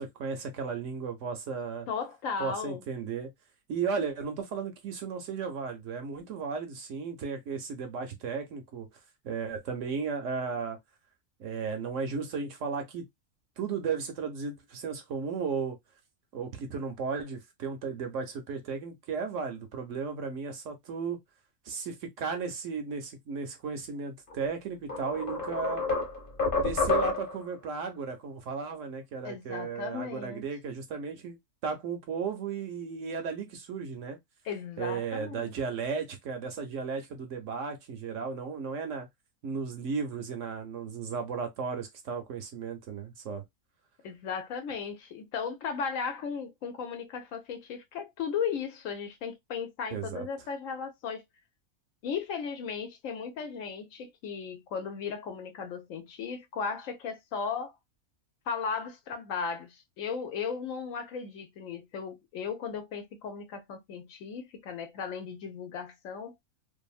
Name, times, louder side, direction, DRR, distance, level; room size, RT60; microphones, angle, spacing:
voice 1, 0.0-1.9 2.4-3.3 3.7-8.9 9.2-10.8 11.4-13.0 13.6-15.8 16.3-21.2 21.7-25.8 26.6-31.4 31.6-34.2 34.8-39.1 39.4-43.4 49.9-50.3, right 5 dB, 65° right, 0.9 m, -35 dB
voice 2, 1.9-2.8 29.2-30.4 34.4-35.5 44.0-51.2 52.0-57.7 58.5-66.3, left 6 dB, 65° left, 0.9 m, -36 dB
sound 1, 24.3-24.4 24.9-27.5, left 3 dB, 40° left, 1.0 m, -29 dB
2.7 x 2.5 x 2.3 m
omnidirectional pair, 1.5 m